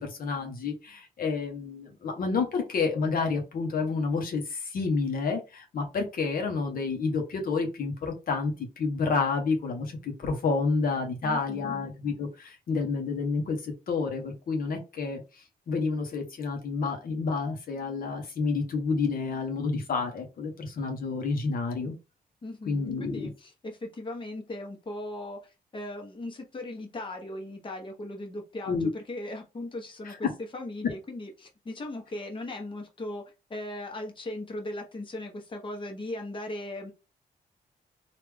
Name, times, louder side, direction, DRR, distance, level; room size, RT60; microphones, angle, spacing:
voice 1, 0.0-15.2 15.7-21.9 22.7-23.3 28.7-28.9 30.0-30.2, left 4 dB, 65° left, 4 dB, 0.9 m, -29 dB
voice 2, 11.2-11.9 22.4-30.3 30.5-33.2 33.5-36.9, left 1 dB, 30° left, 2 dB, 1.0 m, -38 dB
3.2 x 2.5 x 3.4 m, 0.28 s
cardioid pair, 110°, 16 cm